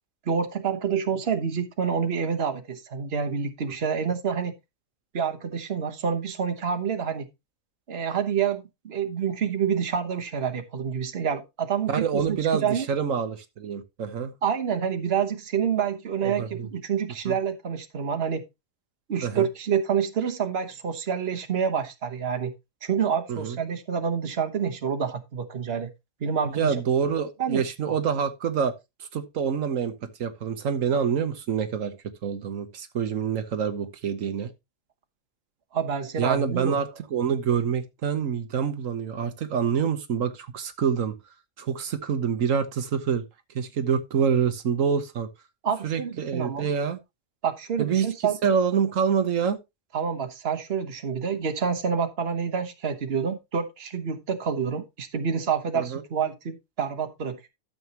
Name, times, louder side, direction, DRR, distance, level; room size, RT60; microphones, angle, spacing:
voice 1, 0.3-4.5 5.1-7.3 7.9-12.9 14.4-18.4 19.1-22.5 22.8-25.9 26.2-26.7 27.4-28.0 35.7-36.8 45.6-46.7 47.4-48.4 49.9-57.5, right 7 dB, 50° right, 1.4 m, -28 dB
voice 2, 11.9-14.3 16.2-16.7 17.2-17.3 19.2-19.5 23.3-23.6 26.4-28.7 29.1-34.5 36.2-41.2 41.6-43.2 43.5-45.3 45.8-47.0 47.8-48.1 48.4-49.6 55.7-56.0, right 7 dB, 85° right, 1.4 m, -26 dB
12.5 x 7.0 x 2.9 m
omnidirectional pair, 1.3 m